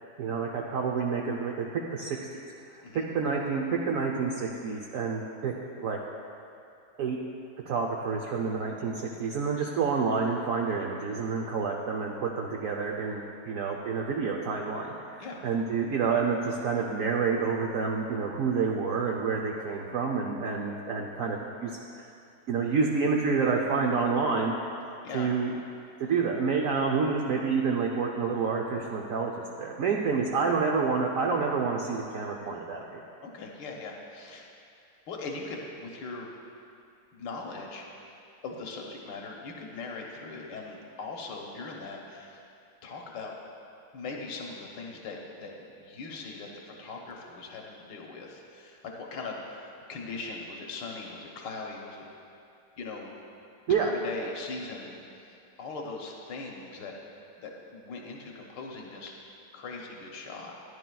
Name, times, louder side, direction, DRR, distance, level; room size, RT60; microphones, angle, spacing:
voice 1, 0.2-1.6 1.9-2.2 2.7-2.8 3.1-5.5 5.8-6.0 7.0-7.2 7.7-22.0 22.5-24.5 25.1-25.5 26.0-29.3 29.6-33.0 53.7-53.9, right 5 dB, 65° right, 0 dB, 0.9 m, -28 dB
voice 2, 33.2-34.5 35.1-36.3 37.1-38.1 38.4-42.4 42.8-43.3 43.9-52.0 52.8-53.1 53.7-56.9 57.4-59.1 59.5-60.6, left 3 dB, 80° left, 0 dB, 1.6 m, -40 dB
14.5 x 10.5 x 2.3 m, 2.6 s
omnidirectional pair, 1.9 m